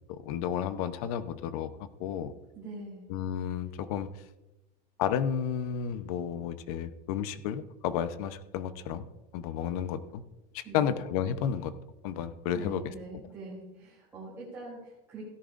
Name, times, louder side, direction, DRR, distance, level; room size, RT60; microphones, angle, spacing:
voice 1, 0.1-1.7 2.0-2.3 3.1-4.1 5.0-9.1 9.3-10.2 10.5-11.7 12.0-12.8, left 9 dB, 60° left, 12 dB, 0.8 m, -32 dB
voice 2, 2.5-3.0 10.6-11.0 12.5-15.2, right 2 dB, 10° right, -9 dB, 3.9 m, -43 dB
17.0 x 10.5 x 2.6 m, 0.99 s
supercardioid pair, 175°, 21 cm